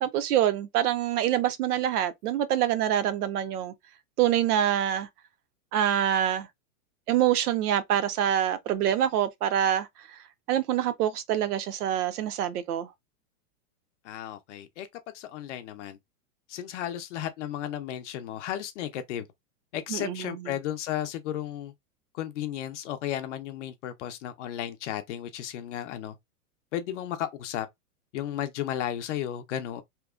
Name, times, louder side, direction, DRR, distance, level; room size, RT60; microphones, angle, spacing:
voice 1, 0.0-3.7 4.2-5.1 5.7-6.5 7.1-9.9 10.5-12.9 19.9-20.4, right 11 dB, 75° right, 0.7 m, -25 dB
voice 2, 14.0-14.9 15.1-16.0 16.5-19.3 19.7-21.7 22.1-26.2 26.7-27.7 28.1-29.8, left 11 dB, 50° left, 0.5 m, -34 dB
2.9 x 2.1 x 2.3 m
supercardioid pair, 155°, 46 cm